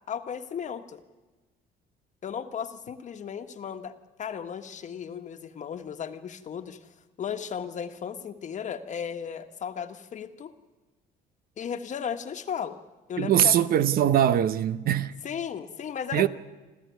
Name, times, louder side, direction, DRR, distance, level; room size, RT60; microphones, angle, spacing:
voice 1, 0.1-1.0 2.2-10.5 11.6-12.8 13.1-13.6 15.2-16.3, left 7 dB, 45° left, 1.5 m, -35 dB
voice 2, 13.2-15.1 16.1-16.3, right 10 dB, 60° right, 0.9 m, -22 dB
29.5 x 13.0 x 9.4 m
cardioid pair, 110°, 17 cm